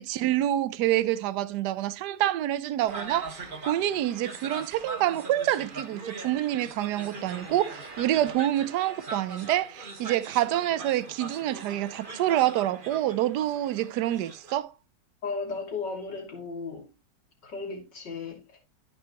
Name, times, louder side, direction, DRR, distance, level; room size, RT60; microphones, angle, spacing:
voice 1, 0.0-14.7, right 13 dB, 70° right, 1.2 m, -27 dB
sound 1, 2.9-14.6, right 3 dB, 30° right, 1.2 m, -41 dB
voice 2, 15.2-16.9 17.4-18.6, left 4 dB, 70° left, 3.3 m, -35 dB
13.0 x 6.7 x 2.9 m
omnidirectional pair, 2.0 m